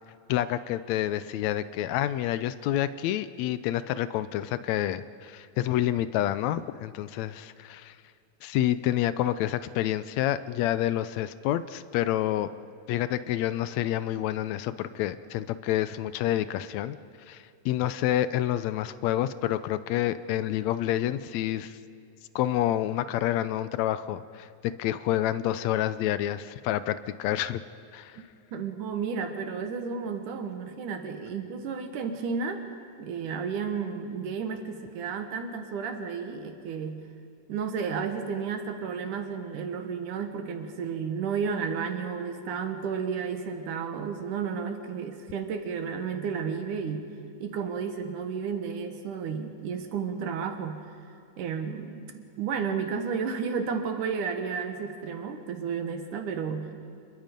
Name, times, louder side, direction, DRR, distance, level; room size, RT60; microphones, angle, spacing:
voice 1, 0.3-8.0 8.4-12.5 12.9-17.0 17.3-21.8 22.4-27.6 27.9-28.2, left 12 dB, 75° left, 14 dB, 1.8 m, -28 dB
voice 2, 28.5-32.6 33.0-37.0 37.5-47.0 47.4-50.8 51.4-56.7, right 6 dB, 80° right, 6 dB, 3.0 m, -32 dB
27.0 x 22.0 x 5.3 m, 2.6 s
omnidirectional pair, 3.5 m